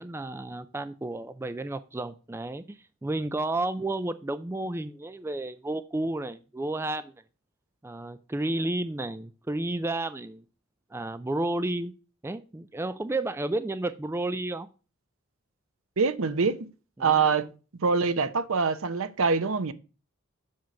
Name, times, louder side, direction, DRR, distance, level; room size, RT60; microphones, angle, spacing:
voice 1, 0.0-7.2 7.8-10.4 10.9-11.9 12.2-14.7 17.0-17.2, right 2 dB, 10° right, 0.3 m, -32 dB
voice 2, 16.0-16.7 17.0-17.4 17.8-19.7, right 5 dB, 75° right, 0.7 m, -24 dB
7.4 x 4.5 x 5.6 m
head